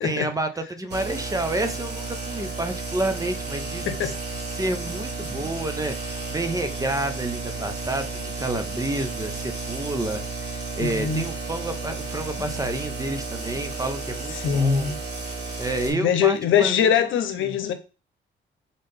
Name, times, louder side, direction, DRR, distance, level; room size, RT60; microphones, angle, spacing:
voice 1, 0.0-4.1 4.5-14.9 15.6-16.9 17.4-17.6, right 2 dB, 15° right, 0.8 m, -29 dB
sound 1, 0.9-15.9, right 3 dB, 55° right, 2.4 m, -33 dB
voice 2, 10.8-11.2 14.3-15.0 15.9-17.7, left 8 dB, 75° left, 0.9 m, -22 dB
4.1 x 3.7 x 3.5 m
cardioid pair, 90°, 20 cm